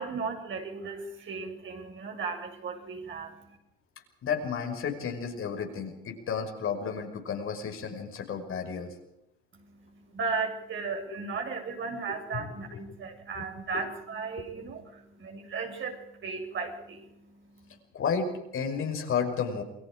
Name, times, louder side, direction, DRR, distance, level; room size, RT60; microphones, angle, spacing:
voice 1, 0.0-3.6 9.5-17.8, right 4 dB, 40° right, 3 dB, 7.6 m, -36 dB
voice 2, 4.2-8.9 12.1-12.8 13.3-13.5 13.7-13.9 17.9-19.6, left 6 dB, 45° left, 4 dB, 5.9 m, -32 dB
29.0 x 22.0 x 4.9 m, 0.85 s
hypercardioid pair, 75°, 30 cm